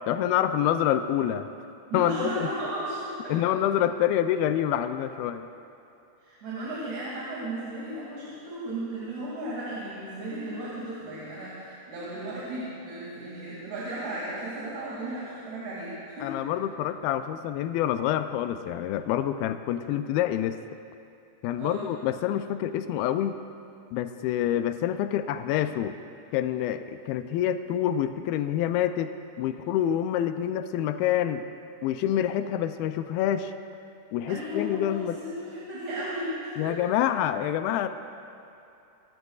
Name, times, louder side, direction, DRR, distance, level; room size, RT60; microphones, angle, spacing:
voice 1, 0.1-1.5 1.9-2.3 3.3-5.5 16.2-20.6 21.4-23.4 23.9-26.0 26.3-31.4 31.8-33.5 34.1-35.2 36.6-37.9, left 11 dB, 85° left, 9 dB, 2.2 m, -27 dB
voice 2, 1.9-3.4 6.2-16.4 21.6-21.9 34.3-36.8, right 1 dB, 80° right, -8 dB, 4.6 m, -35 dB
26.5 x 14.5 x 2.4 m, 2.8 s
omnidirectional pair, 4.8 m